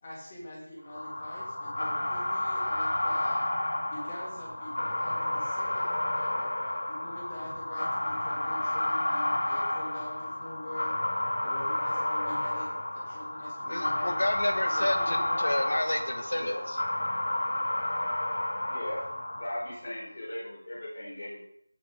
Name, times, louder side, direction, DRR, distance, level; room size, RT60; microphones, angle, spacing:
voice 1, 0.0-3.4 3.9-10.9 11.4-12.7 13.1-14.2 14.6-15.5, left 1 dB, 20° left, -6 dB, 3.0 m, -44 dB
sound 1, 0.9-19.8, left 1 dB, 60° left, 1.9 m, -31 dB
voice 2, 13.7-16.8, left 1 dB, 85° left, 6 dB, 1.8 m, -30 dB
voice 3, 16.3-16.6 18.7-19.0 19.3-21.4, left 1 dB, 35° left, -7 dB, 5.0 m, -37 dB
17.5 x 6.2 x 4.0 m, 0.70 s
figure-of-eight pair, 175°, 0 cm